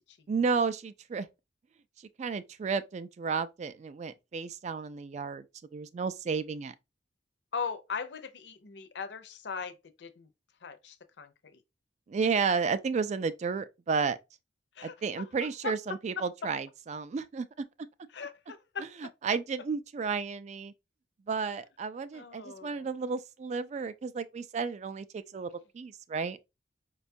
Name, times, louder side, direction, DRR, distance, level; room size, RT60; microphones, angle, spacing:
voice 1, 0.3-1.3 2.2-5.4 5.7-6.7 12.1-14.2 14.8-17.5 19.2-20.7 21.3-25.5 25.7-26.4, right 5 dB, 40° right, 0.3 m, -32 dB
voice 2, 7.5-10.3 10.6-11.6 14.8-15.3 15.6-15.7 18.1-18.9 22.1-22.9, left 5 dB, 65° left, 0.5 m, -39 dB
5.0 x 2.3 x 2.6 m
head